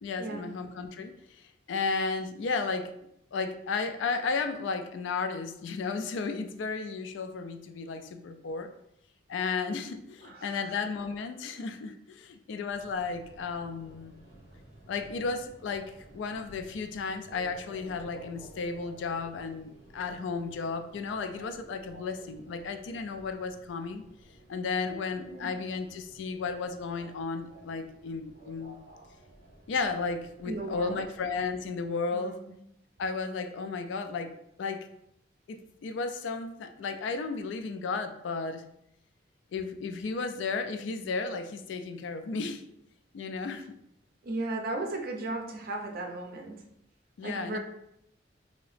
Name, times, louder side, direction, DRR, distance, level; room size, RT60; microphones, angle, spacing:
voice 1, 0.0-2.9 3.3-8.7 9.3-14.1 14.9-24.0 24.5-28.8 29.7-32.4 33.0-34.3 34.6-34.9 35.5-38.6 39.5-42.6 43.1-43.8 47.2-47.6, left 4 dB, 65° left, 8 dB, 0.3 m, -34 dB
voice 2, 10.2-10.7 25.1-25.5 30.4-31.1 32.1-32.5 44.2-46.6 47.2-47.6, right 2 dB, 50° right, 3 dB, 0.5 m, -36 dB
Subway metro underground, 12.7-31.9, right 2 dB, 50° left, 1.5 m, -53 dB
2.9 x 2.7 x 3.1 m, 0.79 s
head